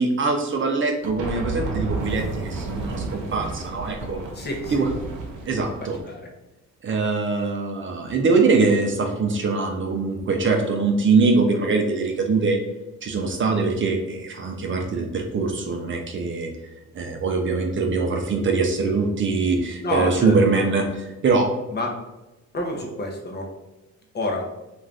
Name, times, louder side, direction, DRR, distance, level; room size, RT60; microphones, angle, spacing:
voice 1, 0.0-4.2 4.7-4.9 5.5-6.0 6.8-12.6 13.0-16.5 16.9-21.5, right 4 dB, 40° right, 3 dB, 0.5 m, -22 dB
sound 1, 1.0-6.0, right 3 dB, 90° right, 0.7 m, -31 dB
voice 2, 4.3-4.9 5.4-5.5 6.1-6.2 19.8-20.7 21.7-22.0 22.5-23.5 24.1-24.5, left 1 dB, 35° left, 1 dB, 0.7 m, -28 dB
2.5 x 2.4 x 3.3 m, 1.0 s
cardioid pair, 90°, 30 cm